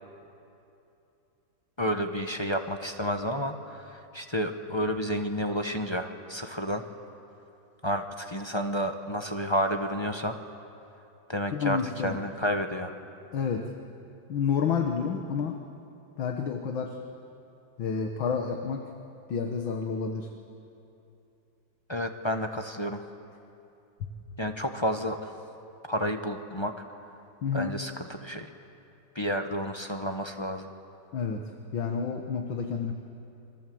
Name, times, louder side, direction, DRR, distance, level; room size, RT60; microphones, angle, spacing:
voice 1, 1.8-6.8 7.8-10.4 11.3-12.9 21.9-23.0 24.4-25.3 25.9-26.7 27.5-28.5 29.1-30.7, equal, 20° left, 5 dB, 0.9 m, -30 dB
voice 2, 11.5-12.2 13.3-13.7 14.3-15.6 16.2-17.0 17.8-18.8 19.3-20.3 24.0-24.1 27.4-27.7 31.1-32.9, left 6 dB, 80° left, 4 dB, 2.2 m, -30 dB
28.0 x 24.0 x 7.8 m, 2.8 s
omnidirectional pair, 2.1 m